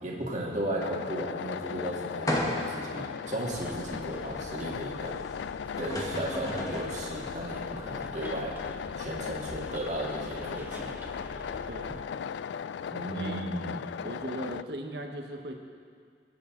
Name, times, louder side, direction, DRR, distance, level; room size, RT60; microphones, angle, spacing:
voice 1, 0.0-5.2 5.8-8.6 9.0-10.9 12.9-13.8, right 1 dB, 40° right, -3 dB, 2.0 m, -35 dB
sound 1, 0.8-14.6, left 7 dB, 80° left, 0.3 m, -37 dB
sound 2, 2.3-2.9 3.5-3.6 5.4-5.5 5.8-7.0, left 1 dB, 20° left, 1.3 m, -32 dB
Bus, 3.5-12.0, right 1 dB, 10° right, 0.8 m, -47 dB
voice 2, 11.7-12.1 13.1-13.6 14.0-15.5, right 1 dB, 70° right, 3 dB, 1.3 m, -38 dB
21.5 x 8.4 x 3.9 m, 2.2 s
head